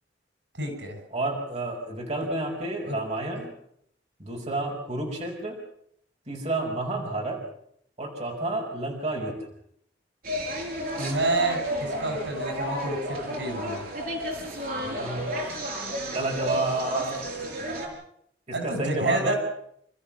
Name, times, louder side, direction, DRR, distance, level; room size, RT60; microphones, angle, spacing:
voice 1, 0.5-1.0 2.8-3.0 11.0-13.9 18.5-19.4, right 2 dB, 90° right, 5 dB, 6.6 m, -29 dB
voice 2, 1.1-3.5 4.2-5.6 6.3-7.4 8.0-9.4 14.7-17.2 18.6-19.3, right 2 dB, 40° right, 0 dB, 5.1 m, -30 dB
sound 1, 10.2-17.9, equal, 55° right, 5.7 m, -32 dB
29.0 x 14.0 x 7.3 m, 0.70 s
head